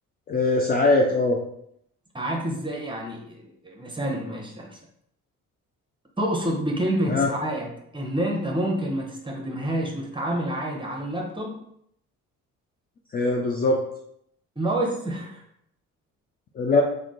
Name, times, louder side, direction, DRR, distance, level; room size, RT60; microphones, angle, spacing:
voice 1, 0.3-1.4 7.1-7.3 13.1-13.8 16.6-16.8, left 2 dB, 20° left, 0 dB, 0.4 m, -21 dB
voice 2, 2.1-4.8 6.2-11.6 14.6-15.4, right 1 dB, 10° right, 0 dB, 0.9 m, -28 dB
3.6 x 2.3 x 3.8 m, 0.73 s
figure-of-eight pair, 45°, 44 cm